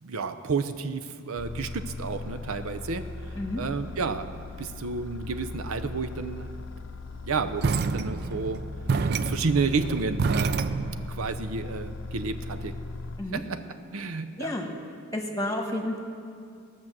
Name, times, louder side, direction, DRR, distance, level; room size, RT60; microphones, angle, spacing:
voice 1, 0.0-3.0 3.6-4.3 4.6-6.5 7.2-8.6 9.0-10.6 11.1-12.7 13.3-13.6 13.9-14.5, right 4 dB, 85° right, 9 dB, 0.7 m, -31 dB
sound 1, 1.4-13.2, left 2 dB, 65° left, 0.6 m, -38 dB
sound 2, 7.6-11.1, right 4 dB, 50° right, 0.4 m, -28 dB
voice 2, 14.4-14.7 15.1-16.0, left 1 dB, 15° left, 2 dB, 1.3 m, -30 dB
17.0 x 6.2 x 7.4 m, 2.3 s
head